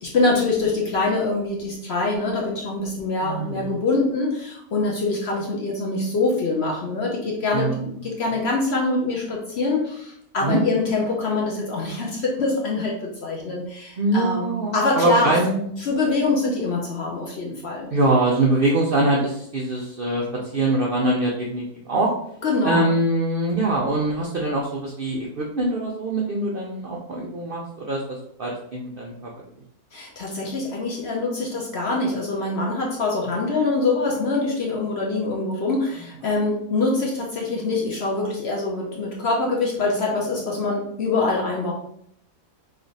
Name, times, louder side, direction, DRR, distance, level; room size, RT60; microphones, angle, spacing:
voice 1, 0.0-15.4 15.8-17.9 22.4-22.9 29.9-41.7, left 3 dB, 60° left, -2 dB, 0.8 m, -24 dB
voice 2, 3.2-3.7 7.5-7.8 10.4-10.6 14.0-15.8 17.9-20.3 20.5-22.1 22.6-28.0 28.4-29.3 36.0-36.1, right 2 dB, 65° right, -2 dB, 0.5 m, -23 dB
3.1 x 2.5 x 3.9 m, 0.68 s
omnidirectional pair, 1.6 m